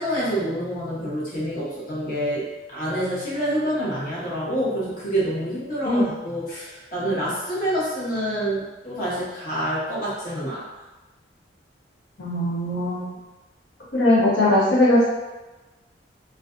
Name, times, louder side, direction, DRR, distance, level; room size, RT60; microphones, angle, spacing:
voice 1, 0.0-10.6, right 1 dB, 50° left, -9 dB, 1.0 m, -27 dB
voice 2, 12.2-13.1 13.9-15.1, left 1 dB, 75° left, -6 dB, 0.8 m, -19 dB
2.4 x 2.2 x 2.4 m, 1.1 s
head